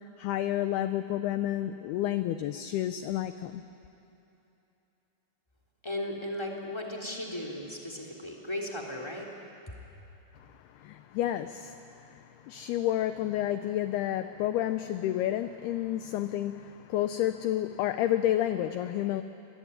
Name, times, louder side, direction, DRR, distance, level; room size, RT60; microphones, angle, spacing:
voice 1, 0.2-3.6 10.8-19.2, left 12 dB, 85° left, 10 dB, 2.2 m, -30 dB
voice 2, 5.8-9.3, left 1 dB, 10° left, 1 dB, 2.2 m, -36 dB
27.0 x 20.5 x 9.8 m, 3.0 s
omnidirectional pair, 5.4 m